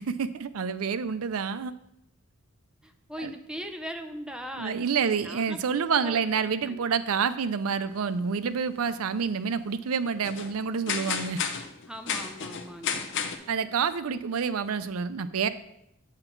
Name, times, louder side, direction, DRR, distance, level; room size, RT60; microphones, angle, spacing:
voice 1, 0.0-1.7 3.2-3.3 4.6-11.4 13.5-15.5, right 6 dB, 70° right, 13 dB, 0.5 m, -28 dB
voice 2, 2.8-6.8 11.9-13.1, equal, 5° right, 6 dB, 0.6 m, -40 dB
sound 1, 7.9-8.0 9.0-9.1 9.2-9.3 10.0-10.1 10.2-10.6 10.9-13.4, left 6 dB, 60° left, 0.7 m, -32 dB
7.8 x 5.9 x 4.5 m, 0.81 s
head